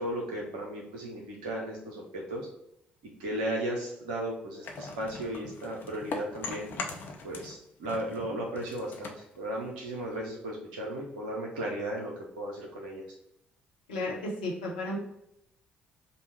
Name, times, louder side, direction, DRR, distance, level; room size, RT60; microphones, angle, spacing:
voice 1, 0.0-2.5 3.2-6.7 7.2-13.0, right 1 dB, 70° right, -2 dB, 0.7 m, -35 dB
sound 1, 4.6-7.6 7.9-10.2, left 4 dB, 45° left, 0.6 m, -41 dB
voice 2, 13.9-15.0, left 1 dB, 75° left, -3 dB, 1.0 m, -33 dB
5.3 x 2.2 x 4.3 m, 0.80 s
figure-of-eight pair, 45°, 5 cm